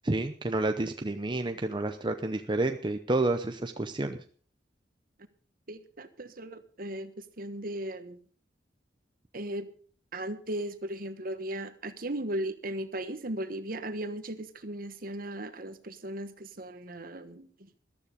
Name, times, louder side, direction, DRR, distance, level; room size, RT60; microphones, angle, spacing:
voice 1, 0.0-4.2, right 2 dB, 25° right, 7 dB, 0.7 m, -29 dB
voice 2, 5.7-8.2 9.3-9.7 10.1-17.7, right 1 dB, 50° right, 11 dB, 1.3 m, -37 dB
14.0 x 12.5 x 5.1 m, 0.43 s
head